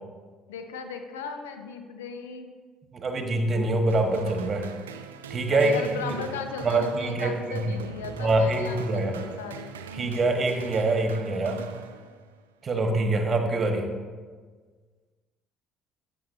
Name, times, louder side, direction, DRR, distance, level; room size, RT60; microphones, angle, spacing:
voice 1, 0.5-2.5 5.5-9.8, left 5 dB, 80° left, 6 dB, 0.7 m, -37 dB
voice 2, 2.9-4.7 5.3-6.2 6.6-7.8 8.2-9.2 10.0-11.6 12.6-13.8, right 2 dB, 40° right, 4 dB, 1.5 m, -25 dB
sound 1, 3.9-12.5, right 7 dB, 85° right, 0.4 m, -42 dB
12.5 x 8.5 x 2.7 m, 1.5 s
hypercardioid pair, 55°, 0 cm